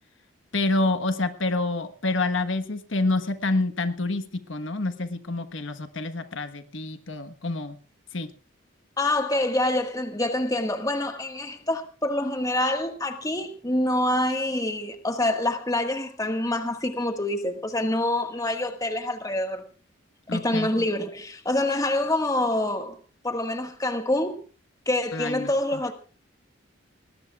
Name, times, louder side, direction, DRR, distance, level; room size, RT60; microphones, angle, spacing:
voice 1, 0.5-4.2 4.5-7.8 8.1-8.3 20.3-20.7 25.1-25.5, left 2 dB, 75° left, 1.3 m, -27 dB
voice 2, 9.0-19.6 20.3-23.0 23.2-24.4 24.8-25.9, left 1 dB, 20° left, 1.6 m, -26 dB
20.0 x 19.5 x 2.4 m
head